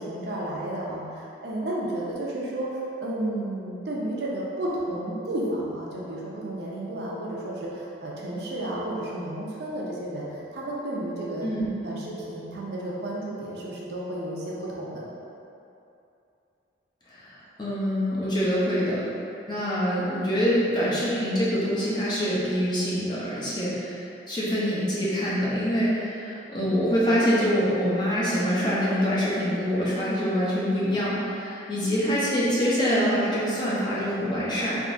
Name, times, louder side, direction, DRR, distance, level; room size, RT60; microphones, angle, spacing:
voice 1, 0.0-11.5 11.8-15.1, right 1 dB, 60° right, -5 dB, 0.5 m, -32 dB
voice 2, 11.4-11.7 17.1-19.2 19.5-34.8, equal, 25° left, -8 dB, 0.6 m, -25 dB
3.5 x 2.8 x 2.5 m, 2.7 s
head